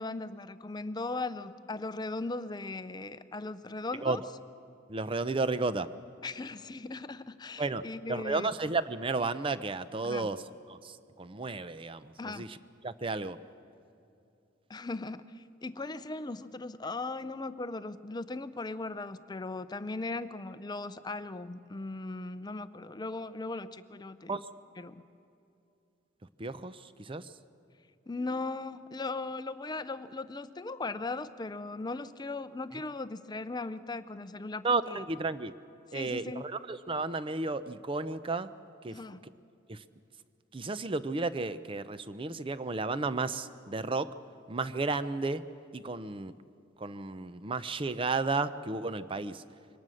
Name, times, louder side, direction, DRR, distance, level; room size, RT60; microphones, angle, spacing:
voice 1, 0.0-4.2 6.2-8.5 10.0-10.3 12.2-12.5 14.7-24.4 24.8-25.0 28.1-35.0 35.9-36.4 38.9-39.2, left 3 dB, 20° left, 13 dB, 0.5 m, -38 dB
voice 2, 4.9-5.9 7.6-10.4 10.7-12.6 12.8-13.4 24.3-24.5 26.4-27.3 34.6-35.5 35.9-38.5 38.8-39.0 39.7-39.8 40.5-44.1 44.5-45.4 45.7-46.4 46.8-49.4, right 3 dB, 30° right, 13 dB, 0.6 m, -33 dB
23.5 x 18.5 x 6.4 m, 2.6 s
head